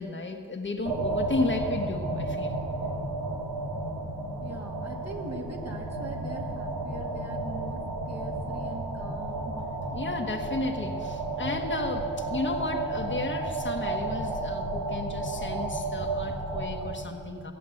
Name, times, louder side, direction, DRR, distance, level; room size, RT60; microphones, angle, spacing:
voice 1, 0.0-2.6 9.9-17.5, left 3 dB, 35° left, 3 dB, 1.3 m, -33 dB
sound 1, 0.9-16.9, right 2 dB, 90° right, 2.4 m, -32 dB
voice 2, 4.4-9.6, right 2 dB, 45° right, 0 dB, 2.6 m, -41 dB
16.5 x 8.4 x 7.8 m, 2.2 s
cardioid pair, 60°, 35 cm